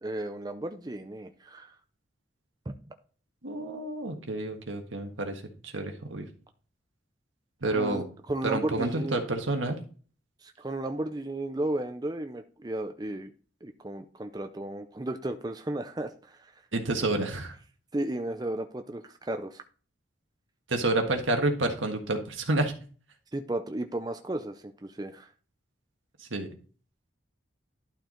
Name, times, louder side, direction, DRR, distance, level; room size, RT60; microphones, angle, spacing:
voice 1, 0.0-1.7 2.7-2.8 7.7-9.2 10.4-13.3 13.6-16.5 17.9-19.6 23.3-25.3, right 1 dB, 20° right, 7 dB, 0.5 m, -34 dB
voice 2, 3.4-6.3 7.6-8.1 8.4-9.8 16.7-17.6 20.7-22.7 26.2-26.5, right 2 dB, 80° right, 4 dB, 1.6 m, -29 dB
11.5 x 4.5 x 3.8 m, 0.39 s
head